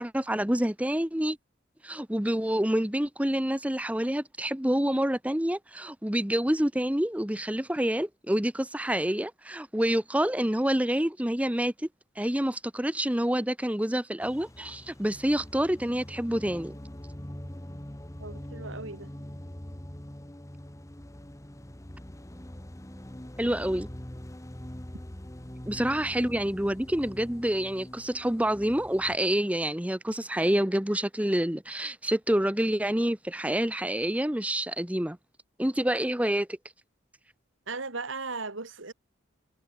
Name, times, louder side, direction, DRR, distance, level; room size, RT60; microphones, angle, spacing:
voice 1, 0.0-1.4 1.8-11.9 12.2-16.8 23.4-23.9 25.7-35.2 35.6-36.5, right 1 dB, 5° right, 0.9 m, -27 dB
sound 1, 14.2-29.2, left 1 dB, 15° left, 1.2 m, -43 dB
voice 2, 18.2-19.1 37.7-38.9, right 3 dB, 80° right, 2.5 m, -37 dB
head